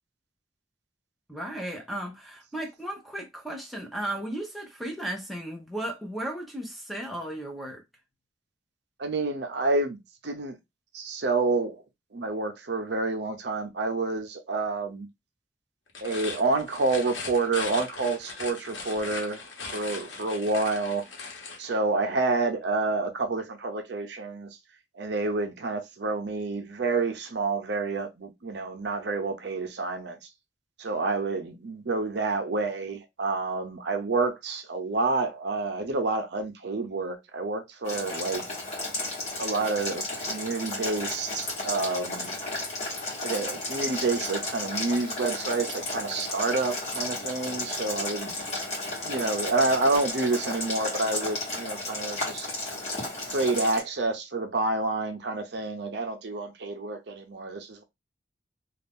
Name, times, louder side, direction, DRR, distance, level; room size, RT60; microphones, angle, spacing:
voice 1, 1.3-7.8, right 1 dB, ahead, 0.7 m, -35 dB
voice 2, 9.0-10.0 10.2-10.6 10.9-11.8 12.1-15.1 16.0-19.4 19.7-21.0 21.6-24.5 25.0-30.2 30.8-38.4 39.4-42.3 43.2-48.4 49.0-52.5 53.3-57.8, right 3 dB, 60° right, 0.6 m, -28 dB
sound 1, 15.9-21.7, left 4 dB, 75° left, 1.0 m, -39 dB
Boiling, 37.8-53.8, left 2 dB, 35° left, 1.3 m, -33 dB
2.6 x 2.4 x 3.5 m
head